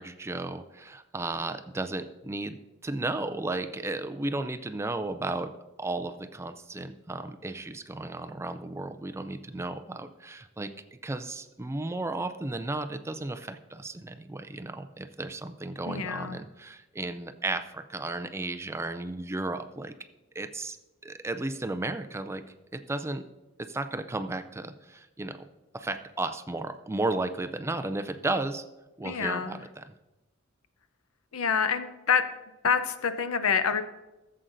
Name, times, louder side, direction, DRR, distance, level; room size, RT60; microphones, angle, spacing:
voice 1, 0.0-2.6 2.8-20.0 20.4-20.8 21.0-22.4 22.7-23.2 23.6-25.5 25.7-28.6 29.0-29.8, right 2 dB, 15° right, 9 dB, 0.4 m, -34 dB
voice 2, 15.9-16.4 29.0-29.6 31.3-32.2 32.6-33.8, left 6 dB, 85° left, 10 dB, 0.7 m, -27 dB
15.0 x 7.6 x 2.6 m, 1.0 s
head